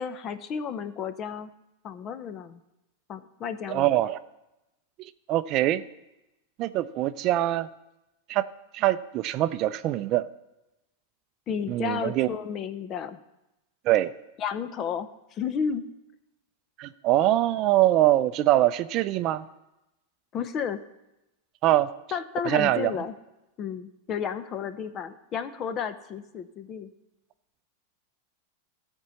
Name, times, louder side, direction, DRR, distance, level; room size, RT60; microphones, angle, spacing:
voice 1, 0.0-1.5 1.8-2.6 3.1-4.0 11.5-13.2 14.4-15.8 20.3-20.8 22.1-23.2 23.6-26.9, left 7 dB, 35° left, 12 dB, 0.7 m, -32 dB
voice 2, 3.7-4.2 5.0-5.8 6.6-7.7 8.3-8.5 8.7-10.3 11.7-12.3 13.9-14.1 16.8-19.5 21.6-21.9 22.5-22.9, right 14 dB, 45° right, 13 dB, 0.4 m, -23 dB
13.5 x 4.5 x 7.0 m, 0.95 s
hypercardioid pair, 125°, 0 cm